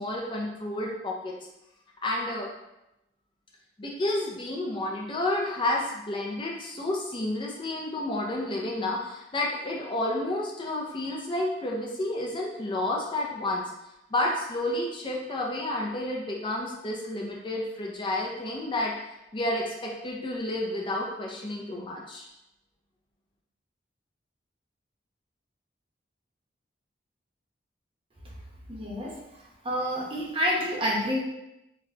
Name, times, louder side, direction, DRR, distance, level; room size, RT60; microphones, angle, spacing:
voice 1, 0.0-1.3 2.0-2.5 3.8-13.6 14.1-18.9 19.3-22.2, left 1 dB, 30° left, -2 dB, 0.4 m, -30 dB
voice 2, 28.7-29.2 29.6-31.2, equal, 30° right, -4 dB, 0.7 m, -28 dB
4.0 x 2.1 x 2.7 m, 0.90 s
head